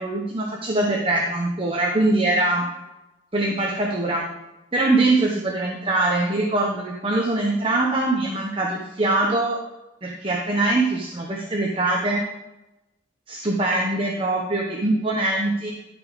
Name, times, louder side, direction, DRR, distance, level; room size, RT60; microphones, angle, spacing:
voice 1, 0.0-2.6 3.3-4.3 4.7-9.6 10.0-12.2 13.3-15.7, right 2 dB, 25° right, -2 dB, 1.1 m, -22 dB
12.5 x 5.3 x 4.9 m, 0.98 s
head